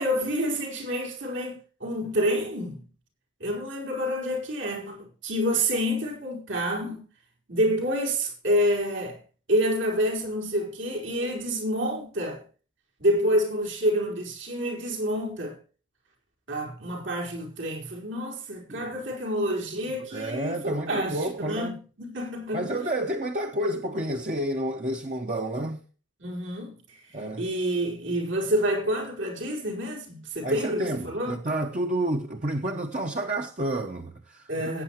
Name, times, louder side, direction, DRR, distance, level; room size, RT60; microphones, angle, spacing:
voice 1, 0.0-2.8 3.4-7.1 7.5-9.2 9.5-12.4 13.0-15.6 16.5-22.8 26.2-31.4 34.5-34.8, equal, 80° right, 4.6 m, -28 dB
voice 2, 18.7-19.0 20.1-21.7 22.5-25.8 27.1-27.5 30.4-34.5, right 1 dB, 40° right, 0.9 m, -30 dB
18.5 x 8.8 x 3.1 m
head